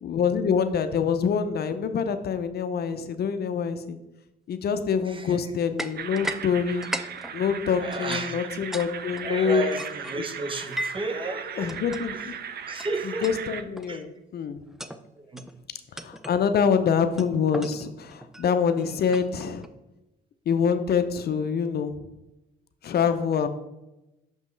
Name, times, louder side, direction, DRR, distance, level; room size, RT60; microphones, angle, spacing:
voice 1, 0.0-4.0 4.5-6.9 7.3-9.7 11.6-12.3 13.2-14.6 15.9-19.7 20.5-22.0 22.8-23.5, left 6 dB, 55° left, 10 dB, 0.5 m, -25 dB
voice 2, 5.0-5.4 7.8-8.5 9.2-11.7 12.1-12.3 12.7-13.3 13.9-14.0 15.2-15.5, right 2 dB, 25° right, 7 dB, 0.8 m, -33 dB
sound 1, 5.8-6.4 6.7-8.9 9.2-11.1 11.7-12.0 12.8-12.9 13.2-13.5 13.8-14.1 14.6-15.0 15.4-15.6 16.0-16.4 17.2-19.7, right 1 dB, ahead, 0.4 m, -37 dB
sound 2, 6.0-13.6, right 8 dB, 55° right, 0.5 m, -38 dB
6.3 x 5.3 x 3.2 m, 0.96 s
cardioid pair, 90°, 20 cm